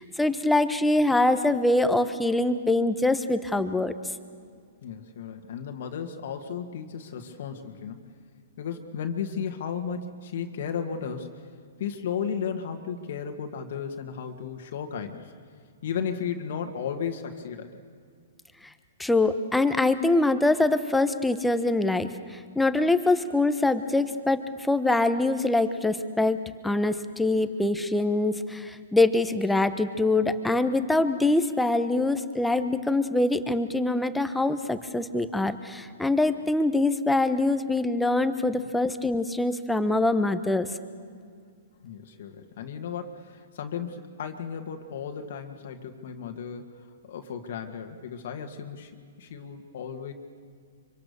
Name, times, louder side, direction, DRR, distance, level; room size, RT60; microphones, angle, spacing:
voice 1, 0.0-3.9 19.0-40.7, left 2 dB, 5° left, 10 dB, 1.1 m, -24 dB
voice 2, 4.8-8.1 8.6-11.5 11.8-15.3 15.8-17.8 38.6-38.7 41.8-48.9 49.2-50.1, left 7 dB, 65° left, 5 dB, 1.8 m, -34 dB
25.0 x 24.5 x 6.8 m, 2.2 s
hypercardioid pair, 130°, 0 cm